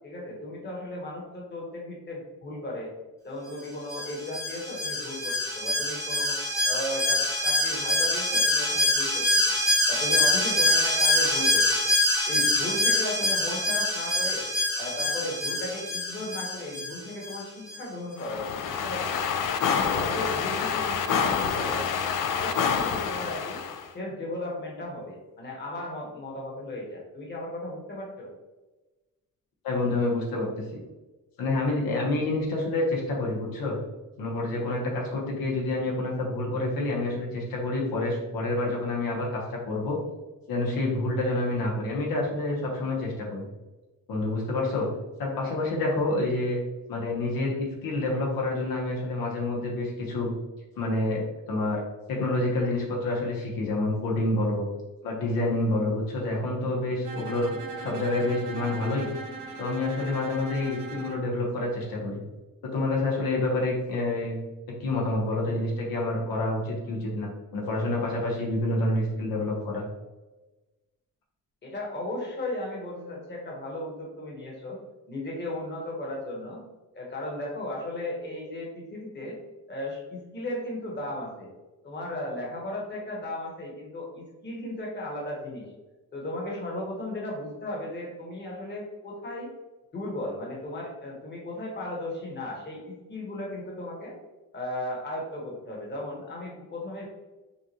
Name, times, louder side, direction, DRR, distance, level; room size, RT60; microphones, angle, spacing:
voice 1, 0.0-2.9 3.2-6.4 6.7-9.6 9.9-11.9 12.3-14.4 14.8-19.2 19.7-21.9 22.4-23.6 23.9-28.3 71.6-74.8 75.1-76.6 76.9-79.4 79.7-81.5 81.8-85.7 86.1-89.5 89.9-94.1 94.5-97.1, left 1 dB, 30° left, -2 dB, 1.2 m, -35 dB
Alarm, 3.9-17.4 17.7-17.8, left 1 dB, 10° left, 0.9 m, -25 dB
sound 1, 18.2-23.9, left 6 dB, 65° left, 0.5 m, -27 dB
voice 2, 29.6-30.8 31.4-33.8 34.2-40.0 40.5-43.4 44.1-44.9 45.2-46.6 46.9-50.3 50.8-51.8 52.1-54.6 55.0-57.5 57.8-59.1 59.6-62.2 62.6-64.4 64.8-69.9, left 2 dB, 85° left, -2 dB, 1.2 m, -28 dB
Bowed string instrument, 57.0-61.3, right 4 dB, 70° right, 0.6 m, -39 dB
5.6 x 2.4 x 2.9 m, 1.1 s
cardioid pair, 130°, 34 cm